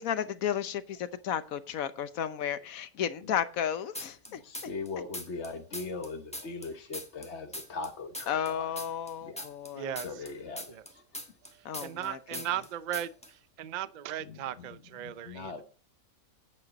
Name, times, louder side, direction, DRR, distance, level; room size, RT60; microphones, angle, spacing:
voice 1, 0.0-4.7 8.3-9.9 11.6-12.4, left 9 dB, 70° left, 1.2 m, -33 dB
sound 1, 3.9-4.9 5.1-7.9 8.1-12.1 12.3-12.7 12.9-13.3, left 1 dB, 5° left, 1.2 m, -40 dB
voice 2, 4.3-8.8 9.2-9.4 10.0-11.0 14.2-15.6, left 4 dB, 50° left, 1.3 m, -40 dB
voice 3, 9.7-10.2 10.7-10.8 11.4-15.6, right 11 dB, 75° right, 0.4 m, -37 dB
9.5 x 8.8 x 4.1 m
omnidirectional pair, 1.6 m